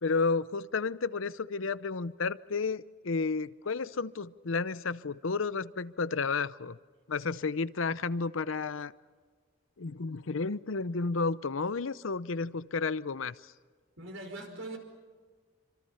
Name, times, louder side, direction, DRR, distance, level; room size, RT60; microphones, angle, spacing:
voice 1, 0.0-6.8 7.1-8.9 9.8-13.3, left 4 dB, 75° left, 16 dB, 0.7 m, -32 dB
voice 2, 14.0-14.8, right 2 dB, 70° right, 5 dB, 5.2 m, -41 dB
27.5 x 26.0 x 5.7 m, 1.5 s
head